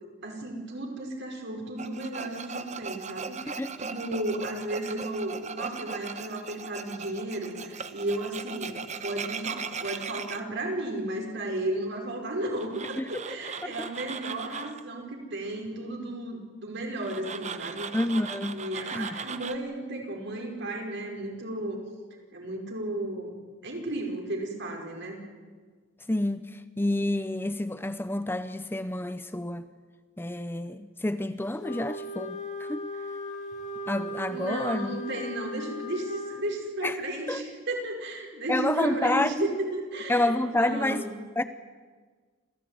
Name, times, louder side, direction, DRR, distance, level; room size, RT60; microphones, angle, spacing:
voice 1, 0.2-17.9 18.5-21.8 22.3-25.2 34.3-41.2, right 1 dB, 60° right, 1 dB, 5.6 m, -34 dB
Tools, 1.8-10.4 12.5-14.8 17.0-19.5, right 5 dB, 35° right, 1.0 m, -38 dB
voice 2, 17.9-18.6 18.9-19.2 26.1-29.7 30.2-32.9 33.9-35.0 36.8-37.0 37.3-37.4 38.5-39.3 40.1-41.0 41.4-41.5, left 1 dB, 10° left, 11 dB, 0.7 m, -29 dB
Wind instrument woodwind instrument, 31.6-36.5, left 1 dB, 40° left, 2.3 m, -37 dB
27.0 x 16.5 x 9.4 m, 1.5 s
head